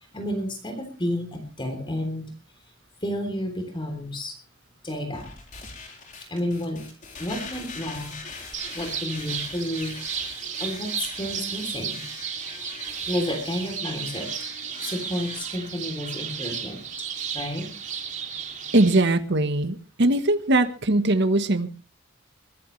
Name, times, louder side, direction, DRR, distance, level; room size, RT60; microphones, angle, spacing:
voice 1, 0.1-2.3 3.0-4.4 4.8-5.3 6.3-6.9 7.2-8.2 8.7-9.9 10.6-12.0 13.1-14.3 14.8-16.8 17.3-17.7, left 1 dB, 25° left, 6 dB, 3.4 m, -31 dB
sound 1, 5.1-15.4, left 4 dB, 40° left, 4.0 m, -42 dB
sound 2, 8.5-19.0, right 7 dB, 40° right, 2.7 m, -34 dB
voice 2, 18.7-21.7, right 2 dB, 55° right, 9 dB, 1.3 m, -21 dB
22.5 x 13.5 x 3.2 m, 0.34 s
head